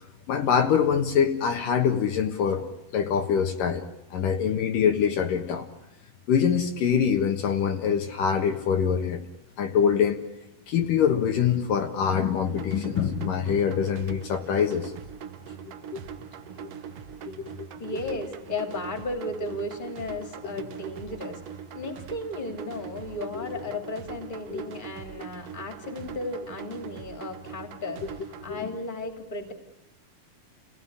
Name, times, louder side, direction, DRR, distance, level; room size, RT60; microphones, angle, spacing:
voice 1, 0.3-2.7 2.9-3.8 4.1-5.7 6.3-9.2 9.6-10.2 10.7-14.9 15.6-16.0 16.6-16.7 17.2-17.7 24.5-24.6 28.5-28.7, left 7 dB, 65° left, 4 dB, 2.9 m, -24 dB
sound 1, 12.5-28.5, right 8 dB, 70° right, 1.5 m, -42 dB
voice 2, 17.8-21.4 21.7-29.5, left 2 dB, 15° left, 6 dB, 3.1 m, -35 dB
29.5 x 17.0 x 9.9 m, 0.89 s
omnidirectional pair, 4.3 m